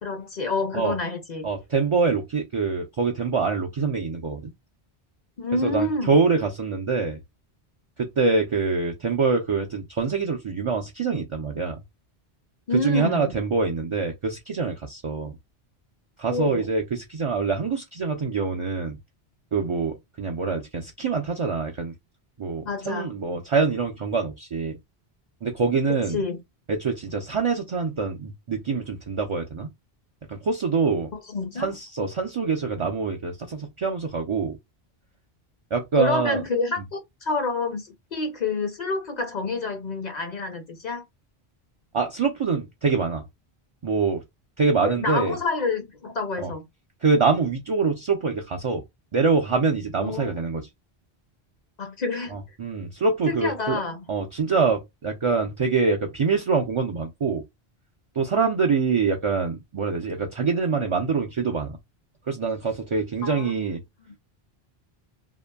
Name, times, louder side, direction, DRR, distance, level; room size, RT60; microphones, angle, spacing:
voice 1, 0.0-1.5 5.4-6.2 12.7-13.3 16.3-16.7 22.6-23.1 25.9-26.4 31.1-31.7 36.0-41.0 44.8-46.6 50.0-50.3 51.8-52.4 53.3-54.0 63.2-63.6 64.0-64.1, left 3 dB, 50° left, 0.6 m, -28 dB
voice 2, 1.4-4.5 5.6-7.2 8.0-11.8 12.8-15.4 16.2-19.0 19.5-21.9 22.4-24.8 25.4-26.2 26.7-29.7 30.3-31.1 31.6-34.6 35.7-36.4 41.9-43.2 43.8-44.2 44.6-45.3 46.4-46.5 47.0-48.8 49.1-50.6 52.3-53.8 54.1-57.4 58.2-61.8 62.3-63.8, right 4 dB, 55° right, 0.3 m, -25 dB
2.9 x 2.5 x 2.2 m
omnidirectional pair, 1.1 m